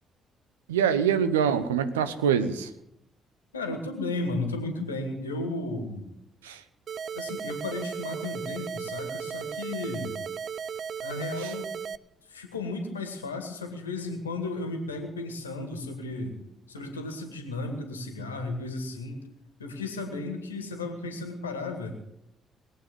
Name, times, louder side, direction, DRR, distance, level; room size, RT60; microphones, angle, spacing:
voice 1, 0.7-2.7 6.4-6.6 11.4-11.5, right 8 dB, 80° right, 12 dB, 0.9 m, -24 dB
voice 2, 3.5-6.0 7.1-10.2 11.0-11.7 12.3-16.4 16.7-19.2 19.6-21.9, left 2 dB, 85° left, 5 dB, 2.0 m, -34 dB
sound 1, 6.9-12.0, right 7 dB, 50° right, 0.6 m, -35 dB
21.0 x 8.5 x 7.8 m, 0.81 s
figure-of-eight pair, 40°, 0 cm